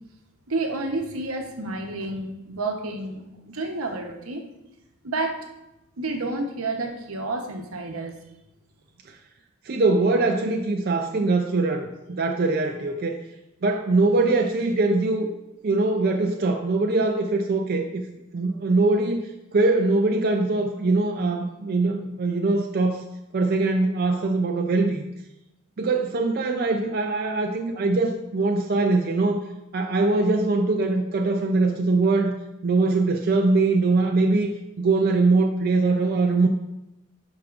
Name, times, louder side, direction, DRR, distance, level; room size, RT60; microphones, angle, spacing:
voice 1, 0.5-4.4 5.0-5.4 6.0-8.2, right 2 dB, 80° right, 3 dB, 1.0 m, -30 dB
voice 2, 9.7-13.2 13.6-15.3 15.6-18.0 18.3-23.0 23.3-25.0 25.8-29.5 29.7-32.4 32.6-34.5 34.8-36.5, right 3 dB, 45° right, 3 dB, 0.4 m, -22 dB
11.5 x 4.9 x 2.5 m, 0.92 s
head